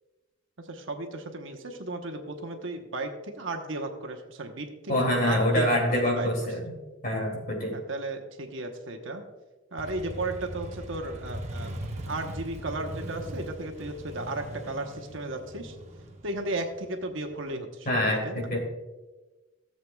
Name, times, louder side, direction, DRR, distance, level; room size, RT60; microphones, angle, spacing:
voice 1, 0.6-6.3 7.7-9.2 9.7-11.8 12.1-15.8 16.2-18.5, right 2 dB, 65° right, 4 dB, 1.0 m, -35 dB
voice 2, 4.9-6.7 7.0-7.8 17.9-18.6, left 1 dB, 40° left, 0 dB, 2.5 m, -25 dB
Motorcycle, 9.8-17.4, equal, 35° right, 1.0 m, -40 dB
16.0 x 7.7 x 2.3 m, 1.2 s
head